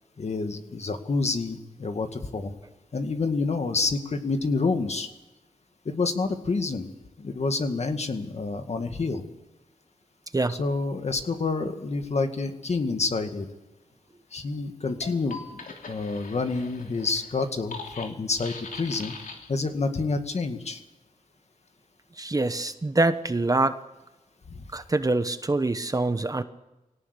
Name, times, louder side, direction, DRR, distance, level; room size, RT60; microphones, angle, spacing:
voice 1, 0.2-2.5 2.9-5.1 5.9-6.9 7.2-9.2 10.5-13.5 14.3-19.1 19.5-20.8 24.5-24.6, left 3 dB, 50° left, 7 dB, 2.1 m, -28 dB
sound 1, 14.9-19.7, left 4 dB, 80° left, 3.0 m, -42 dB
voice 2, 22.2-23.8 24.7-26.4, right 2 dB, 25° right, 10 dB, 1.2 m, -25 dB
21.5 x 18.0 x 8.3 m, 1.0 s
wide cardioid pair, 90°, 14 cm